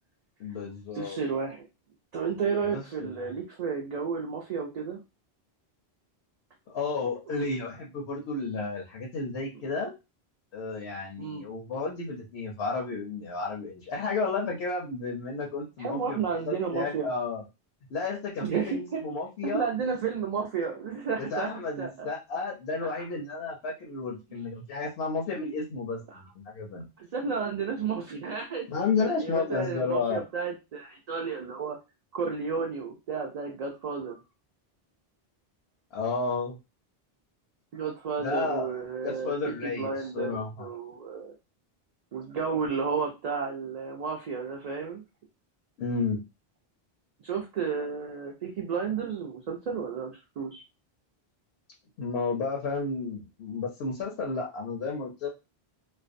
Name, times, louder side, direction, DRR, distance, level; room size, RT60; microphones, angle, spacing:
voice 1, 0.4-1.2 2.7-3.3 6.7-9.9 10.5-16.2 16.5-17.4 17.9-19.7 21.2-26.9 28.7-30.2 35.9-36.6 38.2-38.7 39.0-40.7 45.8-46.2 52.0-55.3, left 4 dB, 85° left, -2 dB, 0.9 m, -32 dB
voice 2, 0.9-1.6 2.1-5.0 11.2-11.4 15.8-17.1 18.4-19.0 19.4-22.1 22.8-23.0 26.1-26.2 27.0-28.7 29.0-31.8 32.1-34.2 37.7-41.3 42.1-45.0 47.2-50.6, right 5 dB, 55° right, 0 dB, 0.5 m, -32 dB
2.5 x 2.1 x 2.5 m, 0.26 s
omnidirectional pair, 1.0 m